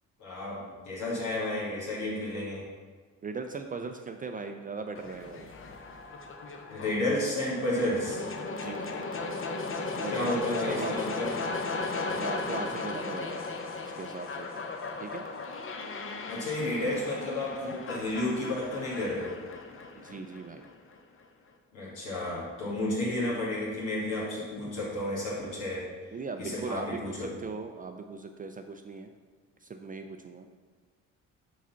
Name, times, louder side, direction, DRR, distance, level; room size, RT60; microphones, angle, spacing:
voice 1, 0.2-2.6 6.7-8.2 10.1-11.3 16.3-19.4 21.7-25.9 26.4-27.3, left 1 dB, 80° left, -6 dB, 1.8 m, -32 dB
voice 2, 3.2-5.5 8.5-9.0 10.0-11.2 12.1-13.4 13.8-14.5 15.0-15.2 20.0-20.6 26.1-29.1 29.6-30.5, right 4 dB, 30° right, 6 dB, 0.4 m, -39 dB
sound 1, 4.9-21.0, left 3 dB, 45° left, 0.8 m, -36 dB
5.0 x 4.0 x 5.6 m, 1.4 s
cardioid pair, 95°, 30 cm